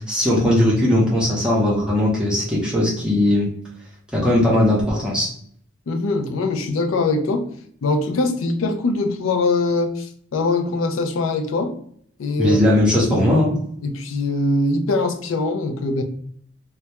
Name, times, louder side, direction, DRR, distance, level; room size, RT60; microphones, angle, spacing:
voice 1, 0.0-3.5 4.1-5.3 12.4-13.6, left 1 dB, 5° right, 0.7 m, -18 dB
voice 2, 5.9-7.5 7.8-11.7 12.2-12.6 13.8-16.0, left 3 dB, 85° left, 0.4 m, -22 dB
2.2 x 2.2 x 2.8 m
head